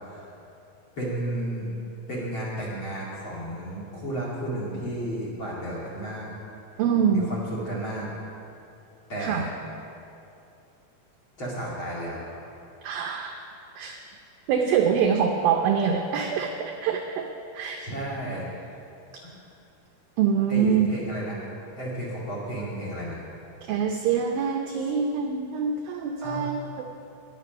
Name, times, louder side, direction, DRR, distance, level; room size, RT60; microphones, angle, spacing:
voice 1, 1.0-1.7 2.1-6.3 7.1-8.1 9.1-9.5 11.4-12.3 17.8-18.6 19.2-19.3 20.5-21.4 21.8-23.2 26.2-26.5, right 1 dB, 35° left, -4 dB, 2.3 m, -33 dB
voice 2, 6.8-7.3 9.2-9.5 12.8-13.4 13.8-14.0 14.5-17.9 19.1-19.2 20.2-20.9 23.6-26.8, right 7 dB, 85° right, 3 dB, 2.1 m, -25 dB
20.0 x 8.3 x 5.2 m, 2.7 s
omnidirectional pair, 5.0 m